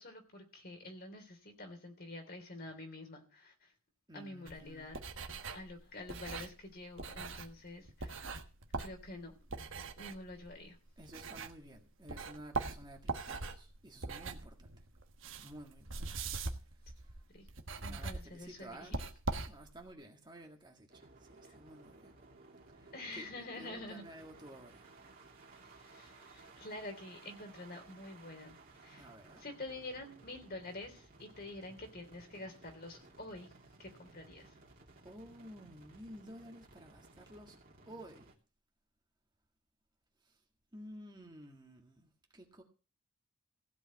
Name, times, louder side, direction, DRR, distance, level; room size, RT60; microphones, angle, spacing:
voice 1, 0.0-3.7 4.1-5.0 5.5-8.4 8.8-9.3 10.0-10.8 17.3-17.5 17.8-19.0 21.4-21.6 22.9-24.0 25.6-29.1 29.4-33.5 33.8-34.6, left 2 dB, 45° left, 3.2 m, -48 dB
voice 2, 4.1-4.9 11.0-14.7 15.4-16.2 17.0-17.1 17.8-19.0 19.5-22.1 22.7-24.9 29.0-29.4 35.0-37.6 37.9-38.3 40.2-40.3 40.7-42.6, right 1 dB, 20° right, 1.8 m, -53 dB
sound 1, 4.5-11.8 12.1-19.9, right 3 dB, 60° right, 1.3 m, -42 dB
sound 2, 20.9-38.4, right 3 dB, 40° right, 3.0 m, -59 dB
16.0 x 5.5 x 8.4 m
head